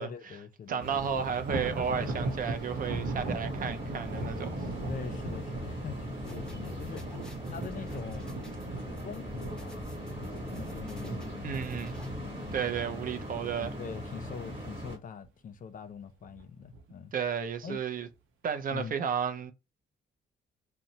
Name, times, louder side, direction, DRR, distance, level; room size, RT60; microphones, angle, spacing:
voice 1, 0.0-0.9 4.9-8.4 9.0-12.5 13.5-17.1 17.6-17.8 18.7-19.0, left 7 dB, 45° left, 0.4 m, -44 dB
voice 2, 0.7-4.6 11.4-12.0 12.5-13.7 17.1-18.1 18.4-19.5, right 7 dB, 45° right, 0.4 m, -33 dB
sound 1, 0.8-15.0, equal, 25° right, 1.1 m, -41 dB
Thunder, 0.9-14.2 14.6-14.9 15.2-15.3 16.2-16.8, right 2 dB, 80° right, 0.7 m, -39 dB
sound 2, 6.2-12.1, equal, 5° left, 0.8 m, -49 dB
2.7 x 2.1 x 2.7 m
cardioid pair, 90°, 20 cm